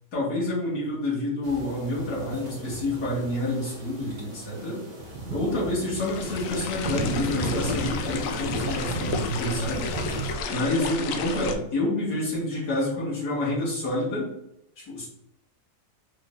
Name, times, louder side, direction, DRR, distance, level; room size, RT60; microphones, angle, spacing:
voice 1, 0.1-4.8 5.3-9.9 10.5-14.3 14.8-15.1, left 1 dB, 60° left, -6 dB, 2.4 m, -28 dB
sound 1, 1.4-10.3, right 2 dB, 30° right, 1.7 m, -35 dB
sound 2, 6.0-11.5, left 4 dB, 80° left, 0.7 m, -32 dB
5.3 x 3.5 x 2.6 m, 0.80 s
omnidirectional pair, 1.9 m